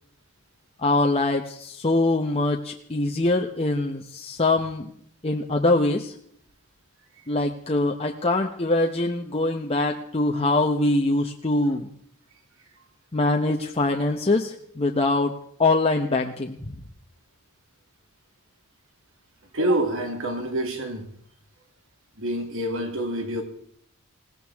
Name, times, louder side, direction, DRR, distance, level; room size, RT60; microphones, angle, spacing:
voice 1, 0.8-4.9 5.2-6.1 7.3-11.9 13.1-15.3 15.6-16.6, left 2 dB, 25° left, 0.8 m, -23 dB
voice 2, 19.5-21.1 22.2-23.4, right 1 dB, 60° right, 2.6 m, -27 dB
20.5 x 17.5 x 3.5 m
head